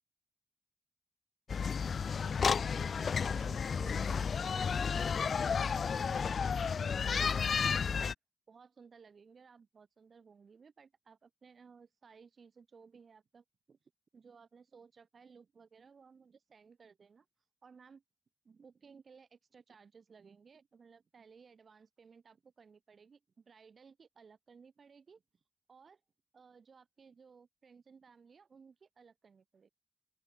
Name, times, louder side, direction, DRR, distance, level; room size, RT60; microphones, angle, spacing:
sound 1, 1.5-8.1, left 6 dB, 70° left, 0.4 m, -32 dB
voice 1, 2.0-4.8 5.1-8.0 8.5-13.8 14.1-17.3 17.6-18.0 18.4-25.2 25.7-26.0 26.3-29.7, right 5 dB, 60° right, 5.7 m, -58 dB
open air
wide cardioid pair, 145°, 0 cm